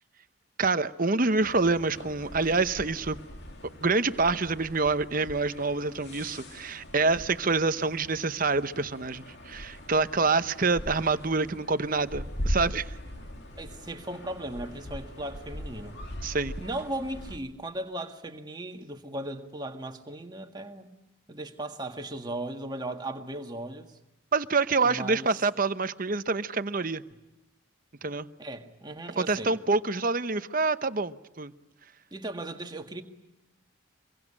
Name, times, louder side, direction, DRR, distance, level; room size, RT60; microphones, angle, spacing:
voice 1, 0.6-3.2 3.8-13.0 16.2-16.5 24.3-27.0 28.0-28.3 29.2-31.5, right 3 dB, 40° right, 0.9 m, -26 dB
sound 1, 1.4-17.4, equal, 55° left, 2.7 m, -40 dB
voice 2, 13.6-16.0 16.6-20.9 21.3-24.0 24.8-25.3 28.4-29.6 32.1-33.0, right 1 dB, 20° right, 1.8 m, -37 dB
25.5 x 23.0 x 10.0 m
head